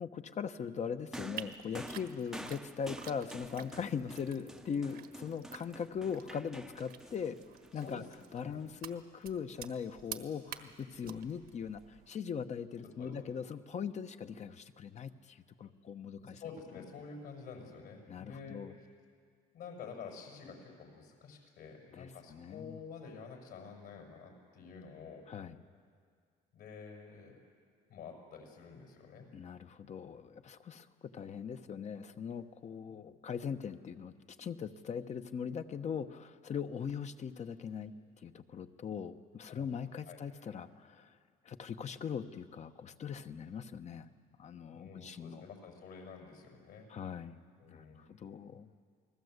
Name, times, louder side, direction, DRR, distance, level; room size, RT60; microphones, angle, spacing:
voice 1, 0.0-7.4 7.7-8.0 8.3-16.4 18.1-18.8 21.9-22.8 25.3-25.6 29.3-34.1 34.4-41.2 41.4-44.1 44.4-45.4 46.9-47.4 47.7-48.7, left 7 dB, 45° left, 9 dB, 1.1 m, -40 dB
sound 1, 1.1-8.6 9.6-9.8, right 1 dB, 5° right, 0.8 m, -49 dB
sound 2, 1.3-12.1, right 9 dB, 65° right, 1.5 m, -51 dB
voice 2, 12.8-13.1 15.7-15.8 16.2-18.6 19.5-25.2 26.5-27.4 27.9-29.3 30.1-30.2 39.5-39.7 40.1-40.2 44.7-46.9 47.6-48.1, left 5 dB, 70° left, 1 dB, 6.7 m, -49 dB
29.0 x 20.0 x 8.1 m, 2.1 s
cardioid pair, 110°, 17 cm